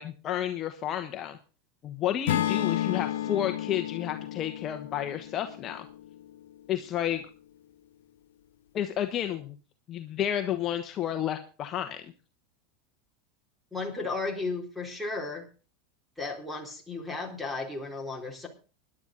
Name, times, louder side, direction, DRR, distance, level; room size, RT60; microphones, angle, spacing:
voice 1, 0.0-1.4 1.8-5.9 6.7-7.2 8.7-9.6 9.9-12.0, left 11 dB, 35° left, 6 dB, 1.2 m, -31 dB
Acoustic guitar / Strum, 2.3-6.5, left 12 dB, 85° left, 0.9 m, -32 dB
voice 2, 13.7-15.5 16.2-18.5, left 3 dB, ahead, 4 dB, 3.9 m, -34 dB
17.5 x 11.0 x 4.0 m, 0.36 s
supercardioid pair, 140°, 0 cm